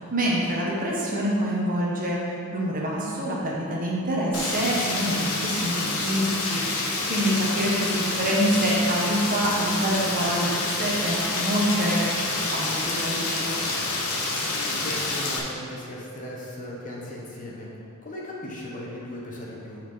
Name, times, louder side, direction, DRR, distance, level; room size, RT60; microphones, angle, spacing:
voice 1, 0.1-2.2 2.5-13.5, equal, 40° right, -4 dB, 1.3 m, -26 dB
Rain, 4.3-15.4, left 2 dB, 75° left, 1.1 m, -28 dB
voice 2, 14.4-17.7 18.0-19.8, left 1 dB, 35° left, -4 dB, 1.2 m, -37 dB
9.0 x 4.5 x 4.6 m, 2.5 s
head